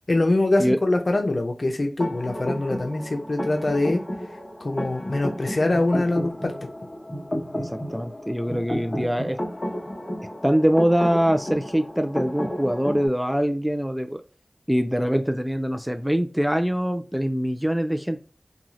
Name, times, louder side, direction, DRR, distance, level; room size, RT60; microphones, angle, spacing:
voice 1, 0.1-4.0 4.6-6.5, left 2 dB, 70° left, 4 dB, 0.6 m, -23 dB
sound 1, 2.0-13.1, equal, 35° left, 1.0 m, -32 dB
voice 2, 7.6-9.4 10.4-14.2 14.7-18.2, equal, 5° right, 7 dB, 0.4 m, -23 dB
2.6 x 2.4 x 3.0 m, 0.34 s
wide cardioid pair, 45°, 0 cm